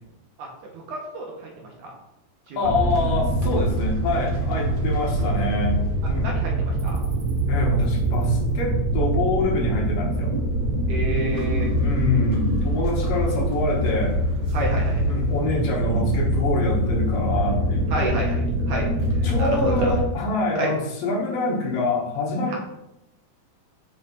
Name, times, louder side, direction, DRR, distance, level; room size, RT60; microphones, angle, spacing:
voice 1, 0.7-1.3 1.8-2.0 2.5-2.6 6.2-6.5 6.8-7.0 10.9-12.0 14.5-15.0 17.9-18.4 18.7-18.9 19.4-20.0 20.6-20.7 22.5-22.6, right 2 dB, 65° right, -1 dB, 2.4 m, -29 dB
voice 2, 2.6-5.8 6.0-6.3 7.5-10.3 11.7-14.2 15.0-18.1 19.2-22.6, left 2 dB, 70° left, -2 dB, 3.0 m, -25 dB
sound 1, 2.6-20.0, right 1 dB, 50° right, 1.0 m, -24 dB
6.5 x 5.7 x 4.3 m, 0.86 s
omnidirectional pair, 4.2 m